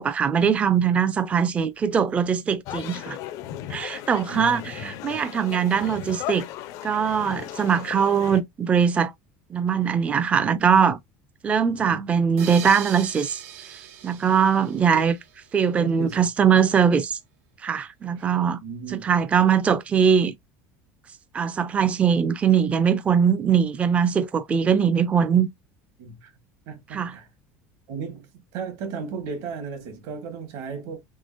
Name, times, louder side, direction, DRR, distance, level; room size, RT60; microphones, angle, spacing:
voice 1, 0.0-3.2 3.7-6.5 6.8-9.1 9.5-11.0 11.4-13.4 14.0-15.2 15.5-17.2 17.6-18.6 18.9-20.3 21.3-25.5 26.9-27.2, right 7 dB, 20° right, 0.4 m, -21 dB
sound 1, 2.7-8.4, left 13 dB, 50° left, 0.4 m, -36 dB
voice 2, 4.3-5.2 11.8-12.1 14.9-15.0 15.8-16.2 18.6-19.0 26.0-26.3 26.7-27.3 27.9-28.3 28.5-31.0, right 5 dB, 60° right, 1.4 m, -35 dB
sound 2, 12.4-15.7, right 10 dB, 85° right, 0.7 m, -40 dB
3.6 x 3.2 x 2.4 m
cardioid pair, 150°, 7 cm